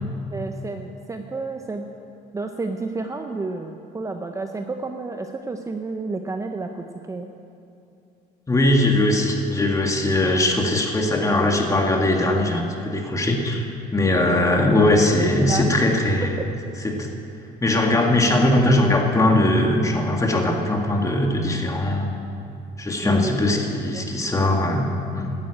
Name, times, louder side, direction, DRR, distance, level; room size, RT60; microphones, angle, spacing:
voice 1, 0.0-1.9 2.3-7.3 14.1-14.8 15.1-15.7 16.4-16.5 23.0-23.3 23.9-24.0, right 3 dB, 20° right, 5 dB, 0.7 m, -31 dB
voice 2, 8.5-13.7 13.9-16.4 16.8-17.1 17.6-22.1 22.8-25.3, left 1 dB, 20° left, 1 dB, 2.0 m, -20 dB
12.0 x 9.7 x 8.7 m, 2.7 s
cardioid pair, 110°, 17 cm